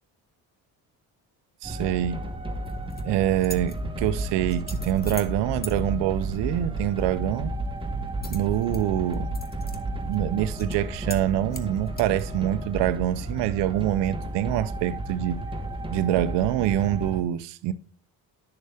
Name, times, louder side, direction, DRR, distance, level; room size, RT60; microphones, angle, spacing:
sound 1, 1.6-17.2, right 1 dB, 10° right, 1.4 m, -32 dB
voice 1, 1.6-2.2 3.0-7.5 8.3-9.3 10.0-15.4 15.9-17.7, right 13 dB, 80° right, 0.7 m, -25 dB
sound 2, 2.6-3.0 3.4-3.8 4.5-5.3 5.6-5.7 8.2-8.8 9.1-9.8 10.1-10.2 10.6-10.8 11.1-11.2 11.5-12.2, left 4 dB, 20° left, 1.0 m, -40 dB
10.5 x 6.5 x 3.5 m
supercardioid pair, 80°, 41 cm